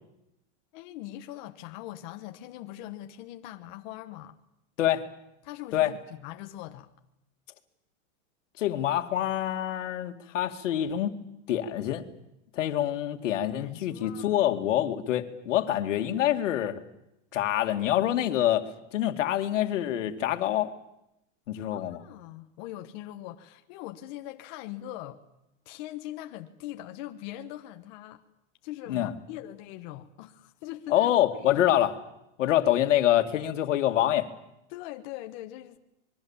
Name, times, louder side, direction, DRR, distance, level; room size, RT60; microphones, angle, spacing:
voice 1, 0.7-4.4 5.4-6.9 13.6-14.4 21.7-25.2 25.6-28.2 28.6-31.7 32.8-32.9 34.7-35.8, left 14 dB, 40° left, 1.3 m, -41 dB
voice 2, 8.6-11.2 11.5-12.0 12.5-16.8 17.3-20.7 21.5-22.0 28.9-29.1 30.9-31.9 32.4-34.3, left 12 dB, 85° left, 2.3 m, -26 dB
26.0 x 22.0 x 7.3 m
supercardioid pair, 175°, 36 cm